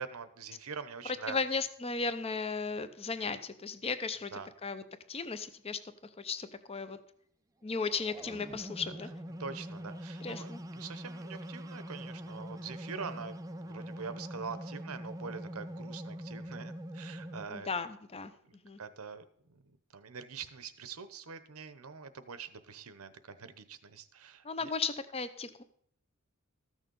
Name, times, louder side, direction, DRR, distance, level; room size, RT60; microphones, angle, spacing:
voice 1, 0.0-1.4 4.3-4.5 9.4-17.7 18.8-19.6 19.9-24.7, right 5 dB, 85° right, 12 dB, 0.9 m, -44 dB
voice 2, 1.3-4.3 4.6-4.8 5.1-5.8 6.2-7.0 7.6-9.1 10.2-10.6 17.5-18.3 18.6-18.8 24.4-25.6, left 4 dB, 30° left, 12 dB, 0.7 m, -35 dB
sound 1, 7.7-17.5, equal, 15° right, 0.5 m, -43 dB
13.5 x 6.5 x 5.4 m, 0.66 s
head